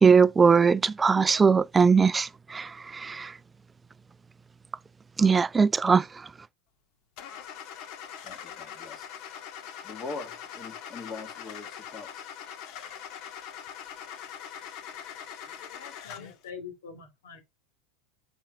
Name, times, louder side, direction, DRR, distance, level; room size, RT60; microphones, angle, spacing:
voice 1, 0.0-3.3 5.2-6.1, right 5 dB, 20° right, 0.4 m, -20 dB
Car / Engine starting, 7.2-16.4, left 8 dB, 55° left, 1.5 m, -42 dB
voice 2, 8.2-9.1 9.8-12.2, left 3 dB, 30° left, 2.1 m, -42 dB
voice 3, 15.6-17.4, left 6 dB, 80° left, 2.6 m, -44 dB
8.6 x 6.1 x 2.5 m
hypercardioid pair, 95°, 0 cm